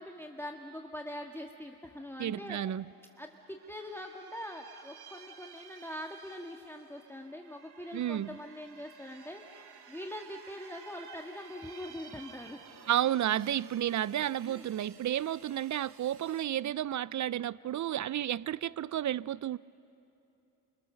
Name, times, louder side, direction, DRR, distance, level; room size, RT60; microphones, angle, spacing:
voice 1, 0.0-2.6 3.2-12.6 14.4-14.7, left 1 dB, 5° left, 1.6 m, -43 dB
voice 2, 2.2-2.8 7.9-8.4 12.9-19.6, right 11 dB, 45° right, 0.5 m, -32 dB
sound 1, 2.7-2.8 3.1-16.4, right 6 dB, 70° right, 1.8 m, -54 dB
27.0 x 26.0 x 6.7 m
cardioid pair, 65°, 41 cm